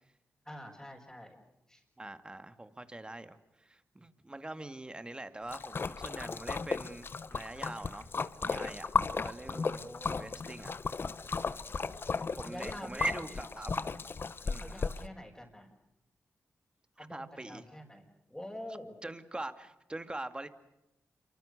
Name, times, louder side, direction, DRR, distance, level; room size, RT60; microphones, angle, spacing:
voice 1, 0.4-1.4 1.7-1.8 3.9-4.1 9.4-10.4 11.3-11.9 12.4-13.0 13.3-13.4 14.6-15.7 17.0-18.9, left 1 dB, 10° left, -3 dB, 5.8 m, -47 dB
voice 2, 2.0-8.1 8.4-8.9 9.2-10.7 12.1-13.7 14.4-14.9 17.0-17.6 19.0-20.5, right 2 dB, 20° right, 11 dB, 2.3 m, -43 dB
Splash splatter, 5.5-15.0, left 4 dB, 50° left, 1.3 m, -35 dB
28.0 x 24.5 x 6.8 m, 0.89 s
cardioid pair, 65°, 5 cm